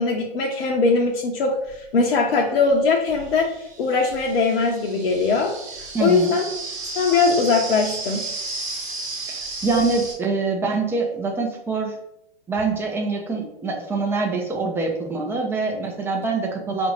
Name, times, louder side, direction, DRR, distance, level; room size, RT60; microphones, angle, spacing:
voice 1, 0.0-3.5 3.8-5.5 5.8-6.4 6.9-8.2, left 4 dB, 65° left, 0 dB, 0.7 m, -21 dB
sound 1, 1.7-1.8 2.7-10.1, right 3 dB, 25° right, 0.9 m, -33 dB
voice 2, 5.9-6.3 9.3-12.0 12.5-16.9, right 3 dB, 10° right, 1 dB, 0.4 m, -24 dB
4.8 x 2.5 x 3.1 m, 0.83 s
hypercardioid pair, 115°, 31 cm